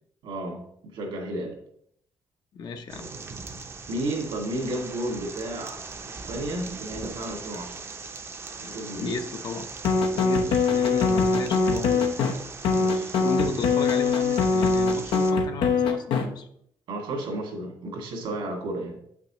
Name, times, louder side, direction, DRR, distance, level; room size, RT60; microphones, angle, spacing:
voice 1, 0.2-1.5 3.9-7.8 8.6-9.2 10.3-10.6 12.8-13.2 16.9-19.0, right 1 dB, 80° right, 1 dB, 2.1 m, -33 dB
voice 2, 2.5-3.1 9.0-9.7 10.1-12.1 13.1-16.5, left 4 dB, 55° left, 6 dB, 0.8 m, -34 dB
sound 1, 2.9-15.3, right 4 dB, 30° right, 0.6 m, -40 dB
sound 2, 9.8-12.3 12.6-16.2, left 4 dB, 90° left, 0.9 m, -22 dB
7.8 x 5.9 x 3.0 m, 0.68 s
cardioid pair, 125°, 8 cm